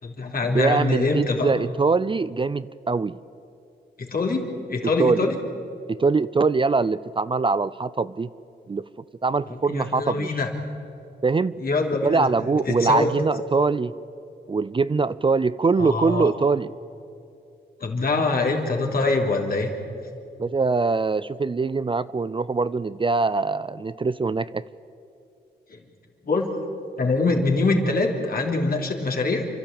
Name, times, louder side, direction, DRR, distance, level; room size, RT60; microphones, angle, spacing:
voice 1, 0.0-1.5 4.0-5.4 9.7-10.5 11.6-12.3 12.7-13.1 15.8-16.3 17.8-19.7 25.7-25.8 26.2-26.5 27.0-29.4, left 3 dB, 55° left, 1 dB, 3.3 m, -24 dB
voice 2, 0.5-3.2 5.0-5.3 5.9-8.3 8.7-8.9 9.2-10.4 11.2-11.5 12.0-14.0 14.5-16.7 20.4-24.6, right 4 dB, 30° right, 16 dB, 0.4 m, -23 dB
29.0 x 12.0 x 8.8 m, 2.7 s
cardioid pair, 70°, 18 cm